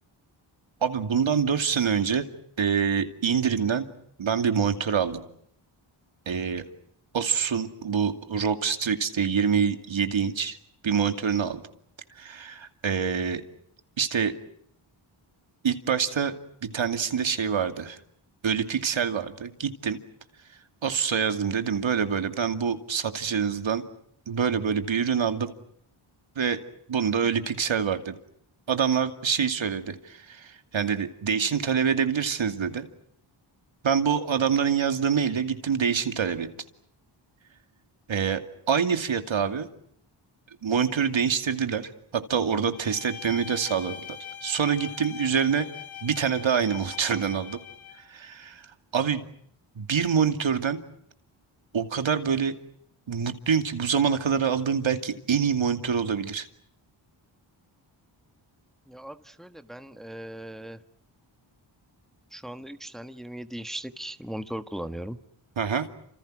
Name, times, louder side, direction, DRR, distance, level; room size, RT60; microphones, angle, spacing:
voice 1, 0.8-2.3 2.6-3.9 4.2-5.2 6.3-6.6 7.1-10.6 10.8-11.6 12.2-13.4 14.0-14.3 15.6-16.4 16.6-18.0 18.4-20.0 20.8-23.8 24.3-25.5 26.4-26.6 26.9-28.1 28.7-32.8 33.8-36.5 38.1-38.4 38.7-39.7 40.6-45.7 46.0-47.6 48.1-48.7 48.9-49.2 49.8-50.8 51.7-52.5 53.1-56.5 65.6-65.9, right 7 dB, 70° right, 7 dB, 2.6 m, -26 dB
Bowed string instrument, 42.7-48.1, left 10 dB, 75° left, 2.7 m, -41 dB
voice 2, 58.9-60.8 62.3-65.2, right 1 dB, ahead, 9 dB, 1.5 m, -38 dB
30.0 x 27.0 x 6.3 m, 0.68 s
cardioid pair, 75°, 48 cm